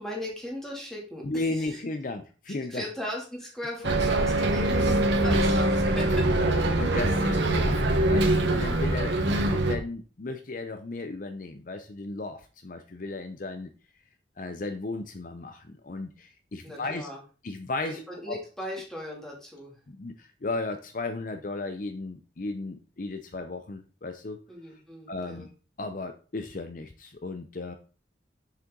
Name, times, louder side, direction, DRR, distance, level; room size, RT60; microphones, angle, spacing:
voice 1, 0.0-1.8 2.7-6.6 16.6-17.2 17.8-19.7 24.5-25.5, equal, 5° left, -3 dB, 2.8 m, -38 dB
voice 2, 1.2-2.8 3.8-3.9 5.8-6.0 6.8-13.7 14.4-17.1 17.4-18.4 19.9-24.4 25.1-25.5 25.8-27.8, left 2 dB, 45° left, 8 dB, 0.6 m, -35 dB
Bus, 3.8-9.8, right 1 dB, 80° right, 1.4 m, -23 dB
7.4 x 6.7 x 3.8 m, 0.36 s
head